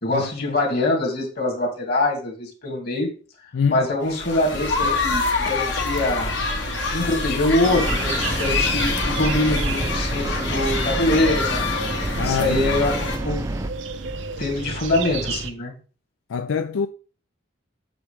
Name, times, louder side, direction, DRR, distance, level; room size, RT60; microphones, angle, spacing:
voice 1, 0.0-3.1 3.7-6.3 6.9-11.7 12.2-12.9 13.2-13.4 14.4-15.8, left 2 dB, 50° left, 2.4 m, -24 dB
voice 2, 3.5-3.8 12.2-12.8 16.3-16.9, left 6 dB, 85° left, 0.4 m, -25 dB
sound 1, 4.1-13.2, left 3 dB, 65° left, 1.7 m, -26 dB
sound 2, 5.9-15.5, right 4 dB, 70° right, 0.7 m, -32 dB
sound 3, 7.6-13.7, right 1 dB, 15° right, 0.5 m, -29 dB
7.9 x 6.5 x 3.4 m
head